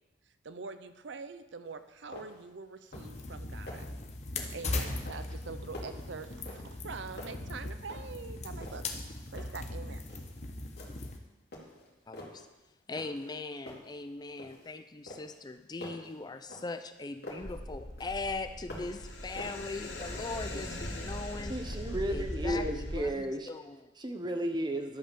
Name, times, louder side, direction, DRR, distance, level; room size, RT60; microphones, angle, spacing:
voice 1, 0.4-3.8 4.5-8.8 9.3-10.2, right 4 dB, 70° right, 11 dB, 0.6 m, -44 dB
sound 1, 1.7-1.8 2.1-2.5 2.8-3.2 3.5-4.0 4.4-4.7 5.0-6.9 7.2-8.2 8.6-9.7 10.1-10.4 10.8-11.2 11.5-12.5 13.0-13.4 13.7-14.7 15.1-17.6 18.0-19.0 19.4-20.4, left 1 dB, 55° left, 2.5 m, -48 dB
sound 2, 2.9-11.2, left 2 dB, 35° left, 1.0 m, -39 dB
voice 2, 12.1-12.5 12.9-21.6 22.1-23.9, left 3 dB, 20° left, 9 dB, 0.4 m, -40 dB
sound 3, 17.4-23.0, left 1 dB, 75° left, 1.8 m, -39 dB
voice 3, 21.5-23.5 24.0-25.0, right 1 dB, 25° right, 5 dB, 0.9 m, -33 dB
11.5 x 5.5 x 6.8 m, 1.0 s
head